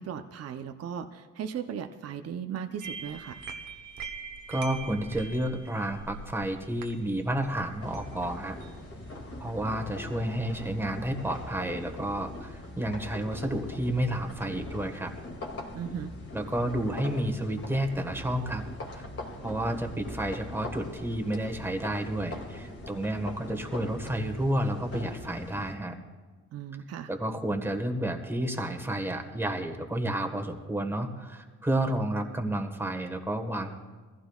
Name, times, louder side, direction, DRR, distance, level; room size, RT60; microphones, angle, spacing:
voice 1, 0.0-3.4 15.7-16.1 26.5-27.1, right 8 dB, 55° right, 7 dB, 0.8 m, -37 dB
sound 1, 2.8-9.4, right 4 dB, 75° right, 1.2 m, -43 dB
voice 2, 4.5-8.6 9.4-15.1 16.3-18.6 18.9-19.0 19.4-26.0 27.1-33.7, right 1 dB, 10° right, 4 dB, 1.5 m, -31 dB
sound 2, 7.8-25.7, left 2 dB, 50° left, 2.5 m, -41 dB
21.0 x 15.0 x 2.4 m, 1.4 s
cardioid pair, 90°, 30 cm